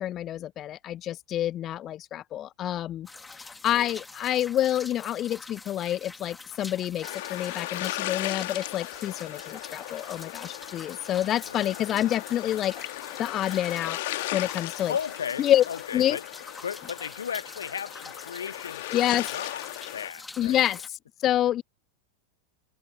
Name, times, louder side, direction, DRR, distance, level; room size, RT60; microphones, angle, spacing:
voice 1, 0.0-12.7 13.2-14.0 14.3-14.9 15.4-15.6 15.9-16.2 18.9-19.3 20.4-21.6, left 12 dB, 30° left, 0.4 m, -27 dB
sound 1, 3.0-20.9, left 3 dB, 10° left, 1.9 m, -45 dB
voice 2, 3.7-4.0 11.5-11.8 14.9-16.2 16.6-19.6 19.9-20.6, left 7 dB, 70° left, 0.8 m, -36 dB
sound 2, 7.0-20.1, left 18 dB, 50° left, 2.1 m, -37 dB
figure-of-eight pair, 90°, 0 cm